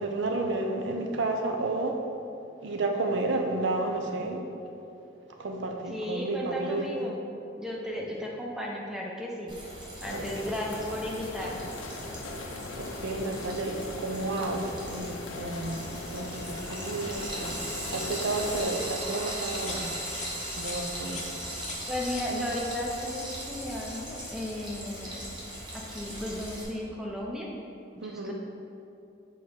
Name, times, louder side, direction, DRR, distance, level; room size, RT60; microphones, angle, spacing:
voice 1, 0.0-2.0 2.6-4.5 5.4-7.1 7.9-8.0 10.1-10.3 12.8-15.9 16.1-17.6 17.9-19.9 20.5-21.3 28.0-28.3, right 2 dB, 70° right, 3 dB, 0.5 m, -31 dB
voice 2, 5.9-7.2 7.6-9.6 10.0-11.7 21.9-25.2 25.9-27.5 28.0-28.3, left 1 dB, 5° right, -2 dB, 0.5 m, -34 dB
Frying (food), 9.5-26.6, right 1 dB, 25° right, 1.0 m, -39 dB
sound 1, 10.0-18.6, left 2 dB, 90° left, 0.5 m, -40 dB
sound 2, 19.5-19.8 20.1-20.3 20.6-20.8 21.1-21.3 21.6-21.8 22.1-22.2 22.5-22.8 23.0-23.8 24.1-24.4, left 4 dB, 35° left, 0.7 m, -43 dB
6.2 x 3.6 x 4.3 m, 2.7 s
head